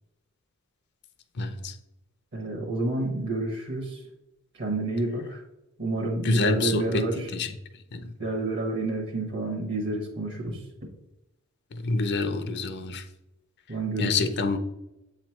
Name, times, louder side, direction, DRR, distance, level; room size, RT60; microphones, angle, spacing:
voice 1, 1.4-1.7 6.2-7.0 7.3-7.5 7.9-8.0 11.8-13.0 14.0-14.6, left 3 dB, 55° left, 0.6 m, -26 dB
voice 2, 2.3-4.0 4.6-5.4 5.8-7.3 8.2-10.6 13.7-14.2, right 2 dB, 55° right, 1.1 m, -29 dB
7.6 x 3.1 x 4.4 m
head